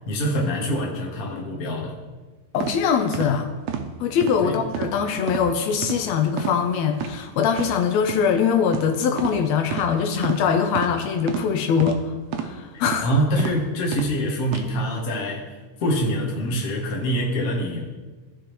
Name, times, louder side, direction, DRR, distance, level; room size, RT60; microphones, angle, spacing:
voice 1, 0.1-1.9 4.4-4.6 12.7-15.5 15.8-17.9, equal, 55° left, -2 dB, 1.0 m, -25 dB
voice 2, 2.5-3.5 4.0-12.0 12.4-13.1, left 7 dB, 75° left, 5 dB, 1.6 m, -22 dB
sound 1, 2.6-2.7 3.1-3.3 3.7-3.8 4.2-4.4 4.7-4.9 5.3-5.4 5.8-6.0 6.4-6.6 6.9-7.1 7.5-7.7 8.1-8.2 8.7-8.9 9.2-9.4 9.7-9.9 10.2-10.4 10.7-10.9 11.3-11.4 11.8-12.0 12.3-12.5 12.9-13.0 13.4-13.5 13.9-14.1 14.5-14.6, right 9 dB, 75° right, 1.5 m, -29 dB
14.0 x 4.9 x 3.1 m, 1.4 s
omnidirectional pair, 3.5 m